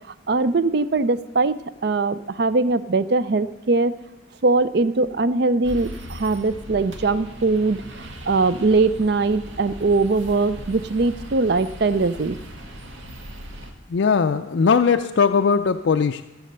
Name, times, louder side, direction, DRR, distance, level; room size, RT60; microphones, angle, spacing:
voice 1, 0.3-3.9 4.4-12.4, right 3 dB, 55° right, 15 dB, 0.5 m, -21 dB
sound 1, 5.6-13.7, equal, 75° right, 1.6 m, -39 dB
voice 2, 13.9-16.2, left 5 dB, 70° left, 6 dB, 0.4 m, -19 dB
15.0 x 7.7 x 6.7 m, 0.98 s
head